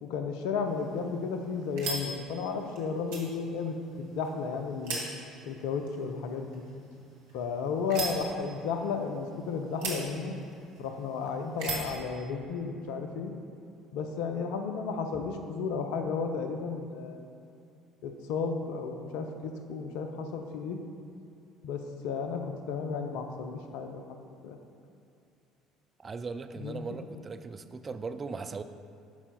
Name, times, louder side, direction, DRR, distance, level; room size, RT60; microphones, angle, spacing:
voice 1, 0.0-5.0 5.5-6.6 7.3-10.4 10.8-13.3 13.9-17.3 18.0-20.8 21.6-22.4 22.7-24.2 24.4-24.6 26.6-26.8, left 5 dB, 65° left, 6 dB, 0.5 m, -33 dB
sound 1, 0.7-12.0, right 3 dB, 70° right, 1.4 m, -41 dB
voice 2, 26.0-28.6, right 4 dB, 30° right, 9 dB, 0.4 m, -38 dB
14.0 x 5.5 x 2.3 m, 2.6 s
figure-of-eight pair, 55°, 0 cm